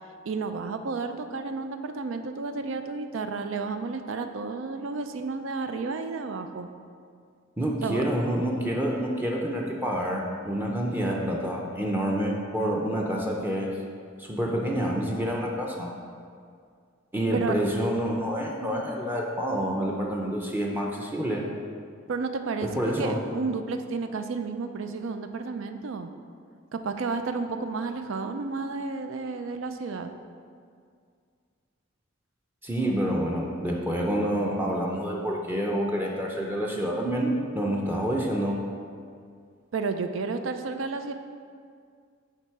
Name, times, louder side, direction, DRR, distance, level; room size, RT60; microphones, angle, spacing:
voice 1, 0.3-6.7 7.8-8.0 17.3-17.6 22.1-22.7 23.0-26.1 26.7-30.1 39.7-41.1, right 4 dB, 70° right, 8 dB, 0.4 m, -31 dB
voice 2, 7.6-13.7 14.2-15.9 17.1-21.5 22.6-23.2 32.6-38.6, equal, 10° right, -2 dB, 0.6 m, -28 dB
7.2 x 3.9 x 4.6 m, 2.2 s
head